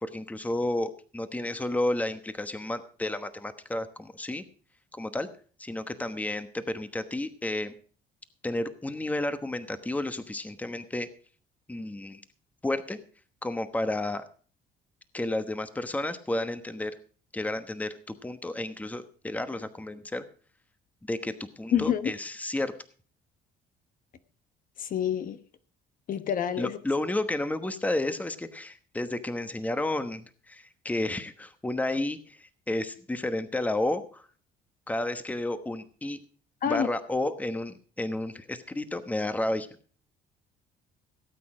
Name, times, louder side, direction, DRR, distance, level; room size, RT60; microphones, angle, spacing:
voice 1, 0.0-4.4 4.9-5.3 5.6-7.7 8.4-11.1 11.7-12.2 12.6-13.0 13.4-14.2 15.1-17.0 17.3-20.2 21.1-22.7 26.6-34.2 34.9-36.2 36.7-39.7, left 1 dB, 10° left, 10 dB, 1.1 m, -31 dB
voice 2, 21.7-22.1 24.8-25.4 26.1-26.8 36.6-36.9, left 9 dB, 55° left, 11 dB, 1.1 m, -27 dB
17.5 x 8.5 x 5.0 m, 0.42 s
cardioid pair, 110°, 17 cm